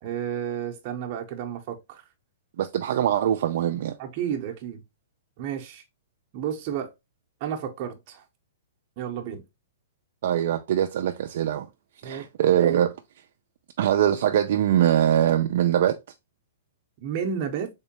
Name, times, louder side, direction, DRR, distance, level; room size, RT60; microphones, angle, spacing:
voice 1, 0.0-2.0 4.0-4.8 5.4-5.8 6.3-6.9 7.4-8.2 9.0-9.4 12.0-12.3 17.0-17.7, right 8 dB, 30° right, 0.7 m, -31 dB
voice 2, 2.6-4.0 10.2-11.7 12.0-13.0 13.8-16.0, right 10 dB, 55° right, 0.3 m, -22 dB
3.6 x 3.1 x 2.9 m
hypercardioid pair, 170°, 0 cm